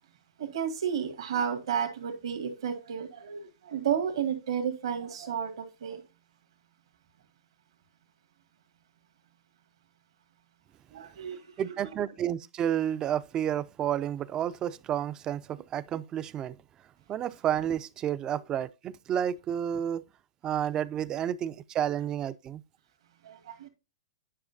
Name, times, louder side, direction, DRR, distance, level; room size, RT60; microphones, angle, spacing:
voice 1, 0.4-6.0 10.9-11.7 23.2-23.7, right 8 dB, 75° right, 1.9 m, -32 dB
voice 2, 11.6-16.6 17.1-20.0 20.4-22.6, right 10 dB, 25° right, 0.4 m, -31 dB
9.9 x 5.6 x 2.7 m
hypercardioid pair, 125°, 3 cm